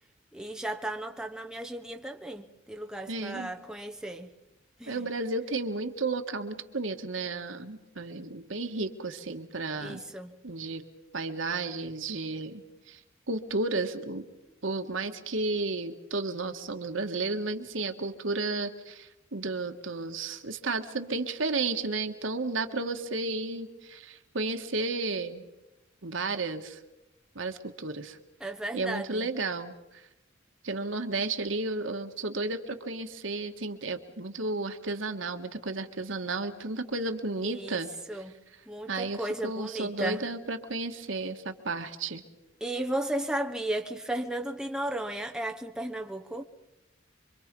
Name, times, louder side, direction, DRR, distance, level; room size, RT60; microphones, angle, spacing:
voice 1, 0.3-4.3 4.8-5.1 9.8-10.4 28.4-29.3 37.4-37.8 38.1-40.3 42.6-46.4, right 1 dB, 5° right, 1.1 m, -35 dB
voice 2, 3.1-3.5 4.9-10.0 10.4-10.8 11.1-13.0 13.3-14.3 14.6-25.5 26.0-26.8 27.3-28.2 28.7-30.0 30.6-37.9 38.9-42.2, right 3 dB, 85° right, 1.6 m, -33 dB
26.0 x 25.0 x 5.4 m
head